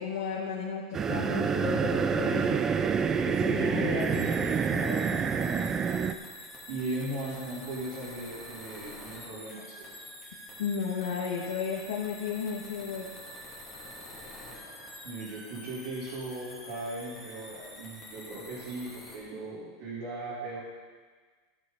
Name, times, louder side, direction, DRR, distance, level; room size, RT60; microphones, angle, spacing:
voice 1, 0.0-2.6 3.2-5.3 10.6-13.1, left 6 dB, 85° left, -3 dB, 1.6 m, -34 dB
sound 1, 0.9-6.1, right 6 dB, 20° right, 0.4 m, -27 dB
sound 2, 4.0-19.2, left 1 dB, 5° left, 2.6 m, -46 dB
voice 2, 6.7-9.9 15.0-20.6, right 2 dB, 55° right, -11 dB, 3.6 m, -38 dB
13.0 x 8.3 x 4.1 m, 1.5 s
supercardioid pair, 150°, 2 cm